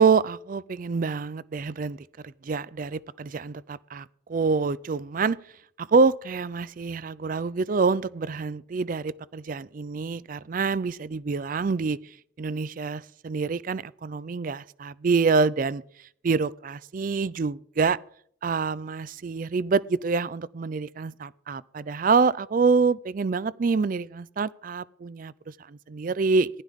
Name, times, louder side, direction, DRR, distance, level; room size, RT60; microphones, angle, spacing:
voice 1, 0.0-2.0 2.2-5.4 5.8-12.0 12.4-15.8 16.2-18.0 18.4-26.5, right 4 dB, 40° right, 0.4 m, -26 dB
15.5 x 11.5 x 3.6 m
head